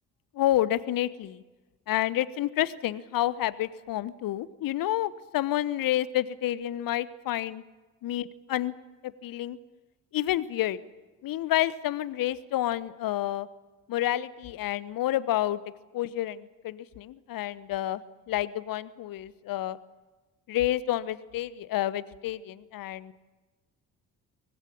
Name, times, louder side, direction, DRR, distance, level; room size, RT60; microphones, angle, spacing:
voice 1, 0.3-1.4 1.9-7.6 8.0-8.7 9.2-9.6 10.1-10.8 11.2-13.5 13.9-15.6 15.9-18.0 18.3-19.8 20.5-23.1, left 13 dB, 50° left, 18 dB, 1.1 m, -29 dB
24.5 x 18.5 x 8.7 m, 1.2 s
figure-of-eight pair, 45°, 45 cm